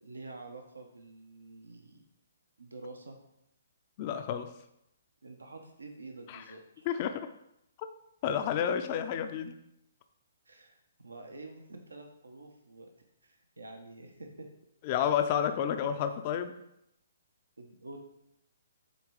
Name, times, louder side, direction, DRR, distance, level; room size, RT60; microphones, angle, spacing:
voice 1, 0.0-2.0 2.6-3.2 5.2-6.9 10.5-10.8 11.0-12.9 13.2-14.5 17.6-18.0, right 2 dB, 85° right, 4 dB, 0.9 m, -48 dB
voice 2, 4.0-4.5 6.3-6.4 6.9-7.3 8.2-9.5 14.8-16.5, left 8 dB, 40° left, 8 dB, 0.5 m, -30 dB
8.2 x 3.5 x 4.7 m, 0.80 s
hypercardioid pair, 135°, 0 cm